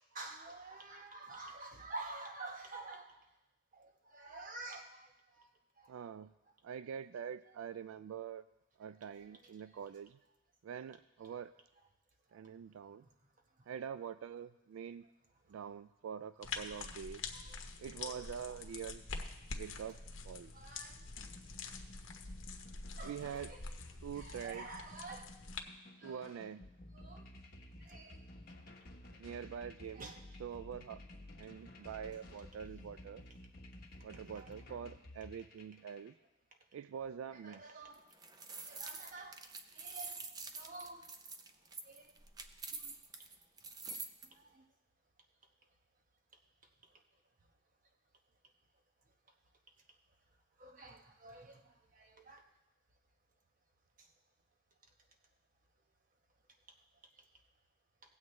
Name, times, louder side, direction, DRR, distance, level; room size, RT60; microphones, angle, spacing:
voice 1, 0.0-3.2 3.7-5.5 5.8-5.9 9.1-9.5 11.2-11.4 16.7-16.9 17.3-17.6 18.0-18.2 18.5-18.6 20.5-21.0 23.0-23.6 24.1-25.3 26.0-26.4 26.9-27.3 27.8-28.2 29.9-30.2 32.4-32.5 34.3-34.5 37.3-38.0 38.6-39.4 39.7-40.3 40.5-41.1 41.8-42.1 42.7-42.9 44.2-44.6 50.6-52.4 54.0-54.1, right 2 dB, 40° right, 3 dB, 1.0 m, -50 dB
voice 2, 5.9-6.3 6.6-8.4 8.8-10.2 10.6-11.5 12.3-13.1 13.7-15.1 15.5-17.2 17.8-19.0 19.6-20.5 23.0-23.5 24.0-24.7 26.0-26.7 29.2-30.1 30.4-31.0 31.4-33.3 34.0-36.1 36.7-37.6, right 8 dB, 80° right, 13 dB, 0.3 m, -45 dB
sound 1, 16.4-25.6, left 4 dB, 70° left, 1.0 m, -46 dB
sound 2, 21.2-36.1, left 1 dB, 50° left, 1.2 m, -54 dB
sound 3, 37.9-44.3, right 4 dB, 20° right, 0.4 m, -46 dB
17.5 x 7.9 x 3.2 m, 0.97 s
head